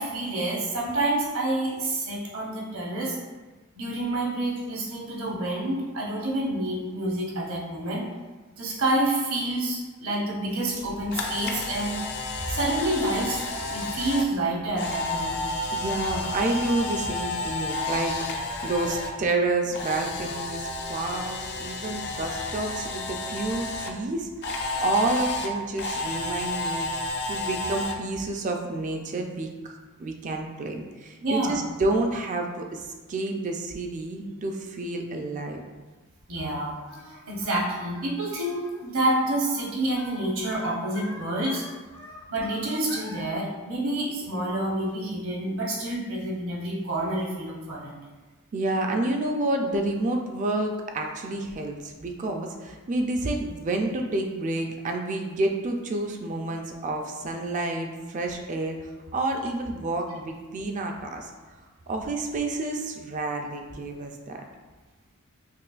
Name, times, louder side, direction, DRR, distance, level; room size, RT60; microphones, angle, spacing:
voice 1, 0.0-3.2 3.8-8.0 8.6-11.9 12.5-13.4 13.7-15.5 31.2-31.6 36.3-36.7 37.0-41.7 42.3-47.9, right 1 dB, 65° right, -4 dB, 0.9 m, -28 dB
Camera, 10.8-19.1 19.4-23.9 24.4-27.9, left 2 dB, 50° left, 0.4 m, -31 dB
voice 2, 15.7-18.1 18.6-26.9 27.3-35.6 48.5-58.8 59.1-61.3 61.9-64.4, right 2 dB, 35° right, 3 dB, 0.3 m, -29 dB
Singing, 36.3-43.2, left 2 dB, 75° left, 1.3 m, -46 dB
5.4 x 2.2 x 2.4 m, 1.3 s
head